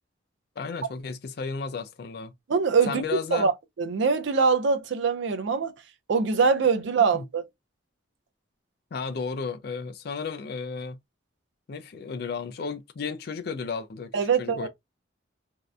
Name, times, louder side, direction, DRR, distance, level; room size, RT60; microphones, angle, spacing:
voice 1, 0.6-2.3 2.9-3.5 7.1-7.2 8.9-11.0 11.7-14.1 14.4-14.7, left 5 dB, 55° left, 0.4 m, -33 dB
voice 2, 2.5-3.5 3.8-5.7 6.1-7.5 14.1-14.7, right 5 dB, 65° right, 0.4 m, -23 dB
2.7 x 2.0 x 2.3 m
head